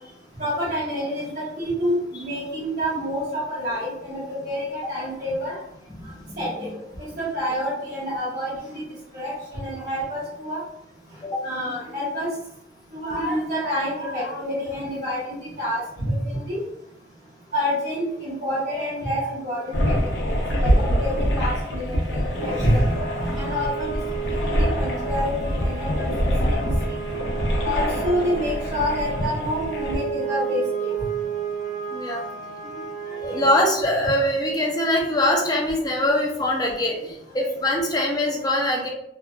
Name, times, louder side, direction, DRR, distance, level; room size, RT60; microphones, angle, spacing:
voice 1, 0.4-5.6 6.4-6.7 7.2-8.8 9.1-10.6 11.4-12.3 12.9-16.6 17.5-19.9 20.6-22.8 23.3-24.0 24.3-26.7 27.6-30.9 33.1-33.2 38.5-38.6, equal, 50° right, -9 dB, 1.1 m, -28 dB
voice 2, 5.9-6.7 11.2-11.5 21.9-23.5 31.9-32.2 32.6-32.7 33.2-38.9, left 1 dB, 20° left, -1 dB, 0.4 m, -24 dB
sound 1, 19.7-30.0, equal, 85° left, 0.6 m, -25 dB
sound 2, 22.3-33.5, right 8 dB, 90° right, 1.1 m, -32 dB
2.6 x 2.2 x 2.2 m, 0.81 s
head